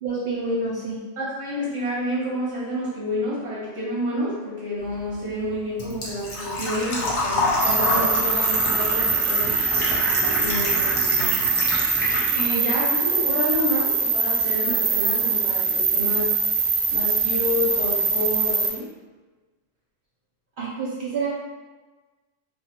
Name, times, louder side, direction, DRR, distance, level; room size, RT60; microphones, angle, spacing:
voice 1, 0.0-1.0 20.6-21.3, right 3 dB, 70° right, -7 dB, 0.4 m, -27 dB
voice 2, 1.2-9.7 10.3-11.4 12.3-16.3 16.9-18.9, left 1 dB, 25° right, -8 dB, 0.8 m, -29 dB
Engine / Trickle dribble / Fill (with liquid), 4.8-12.8 13.1-14.1 14.4-14.5 16.4-16.5 16.7-17.0 17.4-17.5 17.7-17.8, left 2 dB, 55° left, 0.8 m, -27 dB
sound 1, 7.6-18.7, right 5 dB, 90° right, 1.1 m, -23 dB
2.7 x 2.3 x 2.8 m, 1.3 s
omnidirectional pair, 1.5 m